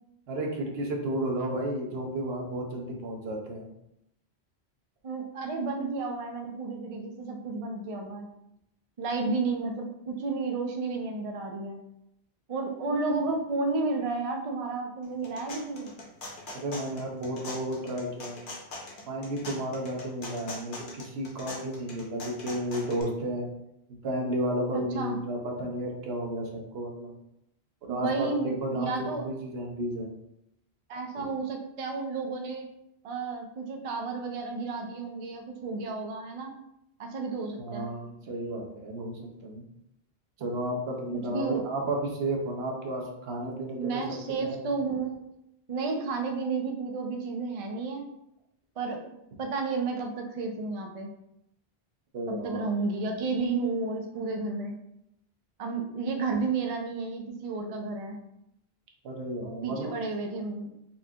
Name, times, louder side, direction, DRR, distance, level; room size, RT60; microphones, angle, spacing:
voice 1, 0.3-3.7 16.5-18.4 19.1-23.5 24.0-27.2 27.9-30.2 31.2-31.3 37.6-39.6 40.4-44.2 44.4-44.6 52.1-52.7 59.0-59.9, right 1 dB, 75° right, 1 dB, 0.9 m, -32 dB
voice 2, 5.0-8.3 9.0-11.8 12.5-15.9 24.7-25.2 27.9-29.2 30.9-32.7 33.0-36.5 37.0-37.9 41.1-41.7 43.7-45.2 45.7-48.0 48.8-49.0 49.4-51.1 52.3-54.7 55.6-58.2 59.6-60.7, right 3 dB, 50° right, 3 dB, 0.4 m, -32 dB
sound 1, 15.0-23.0, left 2 dB, 55° left, 0.9 m, -42 dB
4.2 x 2.4 x 2.7 m, 0.81 s
omnidirectional pair, 1.1 m